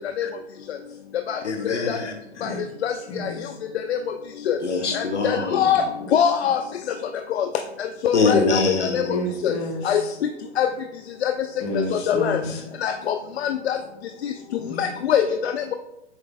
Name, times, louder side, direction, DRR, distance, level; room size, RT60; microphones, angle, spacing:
voice 1, 1.4-2.7 4.6-5.9 8.1-9.3 12.4-12.5, left 3 dB, 85° left, 5 dB, 1.2 m, -24 dB
voice 2, 3.1-3.4 9.1-10.2 11.6-12.6 14.6-14.8, equal, 10° left, 3 dB, 0.3 m, -30 dB
voice 3, 4.9-5.8 6.1-6.6 7.4-7.5 8.0-8.6 8.9-9.0 9.4-9.5 9.9-10.0 10.6-10.7 11.2-11.3 11.9-12.4 12.8-13.1 13.4-13.8 14.8-15.5, left 9 dB, 65° left, 7 dB, 0.5 m, -22 dB
7.9 x 5.4 x 2.3 m, 0.90 s
hypercardioid pair, 120°, 34 cm